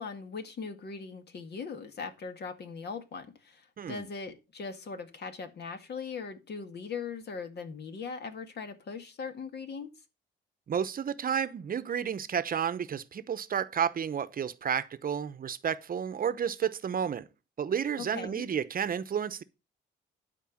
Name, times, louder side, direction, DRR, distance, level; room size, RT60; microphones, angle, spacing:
voice 1, 0.0-9.9 18.0-18.5, left 5 dB, 55° left, 1.9 m, -40 dB
voice 2, 10.7-17.3 17.6-19.4, right 8 dB, 45° right, 0.9 m, -31 dB
11.5 x 4.6 x 7.2 m
cardioid pair, 90°, 20 cm